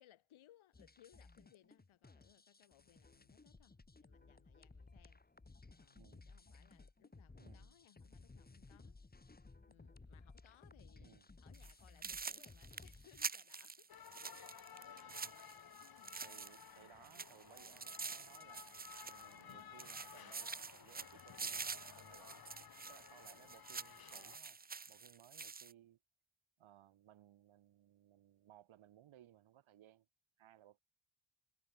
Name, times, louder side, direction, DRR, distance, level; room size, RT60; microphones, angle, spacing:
voice 1, 0.0-5.2 5.7-9.0 9.7-14.0 14.3-14.6 14.9-15.1 15.8-16.2, left 13 dB, 90° left, 4.9 m, -68 dB
sound 1, 0.7-13.3, left 3 dB, 20° left, 3.4 m, -59 dB
voice 2, 5.9-6.3 7.4-7.8 11.0-11.3 15.1-15.3 16.2-24.6 24.9-26.0 26.6-30.1 30.4-30.8, right 12 dB, 85° right, 4.6 m, -64 dB
sound 2, 11.5-11.7 12.0-16.8 17.0-19.5 19.8-25.7, right 5 dB, 20° right, 0.8 m, -47 dB
sound 3, 13.9-24.4, left 8 dB, 50° left, 2.4 m, -56 dB
cardioid pair, 105°, 47 cm